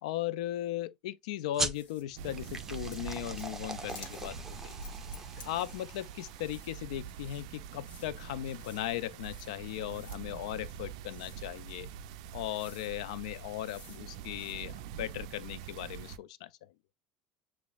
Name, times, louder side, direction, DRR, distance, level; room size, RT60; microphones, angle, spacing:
voice 1, 0.0-4.8 5.4-11.9 12.3-16.7, left 13 dB, 80° left, 0.3 m, -37 dB
sound 1, 1.5-6.6, right 2 dB, 10° right, 0.7 m, -40 dB
sound 2, 1.7-2.0 2.4-2.6 2.9-3.6 3.9-4.3 4.8-6.1 6.4-6.7 7.1-7.4 7.8-8.1 8.5-8.8 9.2-9.5 9.9-10.2 11.1-11.4 12.1-12.2 12.5-12.9 13.6-14.0 14.3-14.5, left 4 dB, 50° left, 1.4 m, -54 dB
sound 3, 2.2-16.2, right 8 dB, 75° right, 0.3 m, -45 dB
6.8 x 2.5 x 2.3 m
hypercardioid pair, 85°, 3 cm